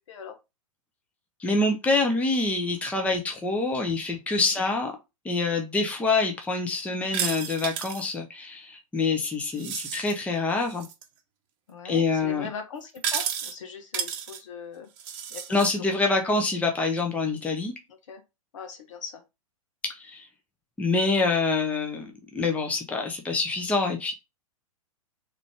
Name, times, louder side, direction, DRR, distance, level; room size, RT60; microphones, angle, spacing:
voice 1, 1.4-4.9 5.2-10.9 11.8-12.5 15.5-17.7 19.9-20.3 20.8-24.1, left 3 dB, 5° left, 0.7 m, -26 dB
sound 1, 7.1-8.1 9.5-10.1 10.7-11.0 13.0-13.5 13.9-14.4 15.0-15.7, right 8 dB, 40° right, 0.9 m, -32 dB
voice 2, 11.7-14.9 15.3-15.8 17.9-18.2 18.5-19.2, left 6 dB, 60° left, 1.2 m, -40 dB
3.7 x 3.3 x 3.5 m
figure-of-eight pair, 105°, 18 cm